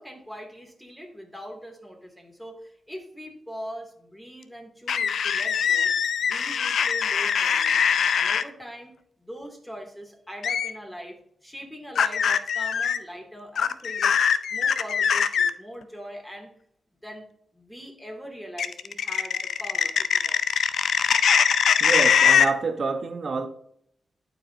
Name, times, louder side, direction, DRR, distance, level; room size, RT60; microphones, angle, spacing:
voice 1, 0.0-5.9 6.2-7.8 8.1-8.9 9.2-14.1 14.5-16.5 17.0-17.3 17.5-20.4, equal, 5° left, 1 dB, 2.5 m, -41 dB
sound 1, 4.9-8.4 10.4-10.7 12.0-13.0 13.6-15.5 18.6-22.5, left 7 dB, 80° left, 0.4 m, -22 dB
voice 2, 21.8-23.5, right 4 dB, 60° right, 8 dB, 1.0 m, -27 dB
11.5 x 4.7 x 2.7 m, 0.69 s
cardioid pair, 55°, 0 cm